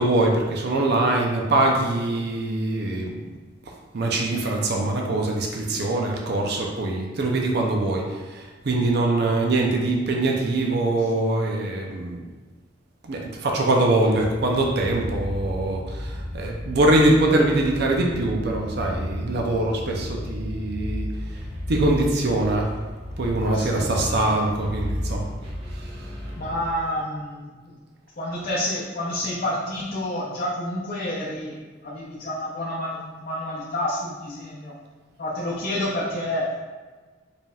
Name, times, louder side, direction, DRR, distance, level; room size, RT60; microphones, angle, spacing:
voice 1, 0.0-3.2 3.9-8.0 8.3-12.2 13.0-21.1 21.7-22.7 23.2-25.3 25.7-26.1, right 2 dB, 60° right, 0 dB, 0.5 m, -23 dB
sound 1, 14.1-26.7, left 1 dB, 30° right, 0.8 m, -33 dB
voice 2, 23.4-24.6 26.4-27.8 28.2-31.6 31.8-34.7 35.2-36.6, left 1 dB, 50° left, -6 dB, 0.6 m, -29 dB
4.9 x 3.3 x 2.3 m, 1.4 s
head